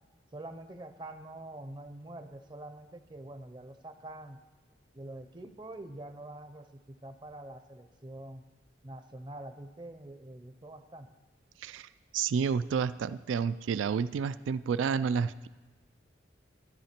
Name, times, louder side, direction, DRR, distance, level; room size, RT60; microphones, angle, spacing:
voice 1, 0.3-4.4 4.9-8.4 8.8-11.1, right 1 dB, 25° right, 8 dB, 0.6 m, -45 dB
voice 2, 11.6-15.5, right 6 dB, 85° right, 16 dB, 0.3 m, -30 dB
12.5 x 11.0 x 4.4 m, 1.2 s
head